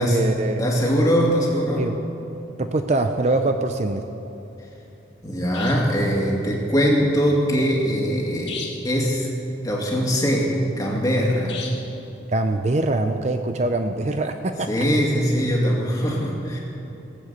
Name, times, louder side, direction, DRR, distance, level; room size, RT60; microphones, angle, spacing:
voice 1, 0.0-0.6 1.8-2.0 2.6-4.0 12.3-14.7, right 2 dB, 35° right, 7 dB, 0.5 m, -23 dB
voice 2, 0.6-1.9 5.2-9.3 9.6-11.6 14.7-16.6, equal, 20° left, -2 dB, 2.4 m, -21 dB
sound 1, 3.3-3.4 5.5-6.0 8.5-9.0 11.5-12.0, left 5 dB, 65° left, 2.0 m, -36 dB
17.5 x 8.1 x 8.2 m, 3.0 s
head